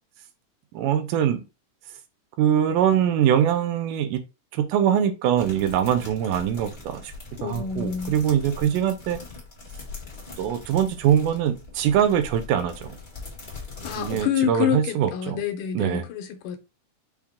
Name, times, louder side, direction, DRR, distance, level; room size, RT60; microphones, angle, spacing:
voice 1, 0.7-1.4 2.4-4.2 4.5-7.1 7.4-9.2 10.4-13.0 14.0-15.4 15.7-16.0, right 9 dB, 90° right, 2.2 m, -23 dB
sound 1, 5.4-14.2, left 3 dB, 25° left, 1.1 m, -41 dB
voice 2, 7.4-8.2 13.8-16.6, left 8 dB, 85° left, 2.3 m, -27 dB
5.8 x 2.1 x 3.5 m
omnidirectional pair, 3.6 m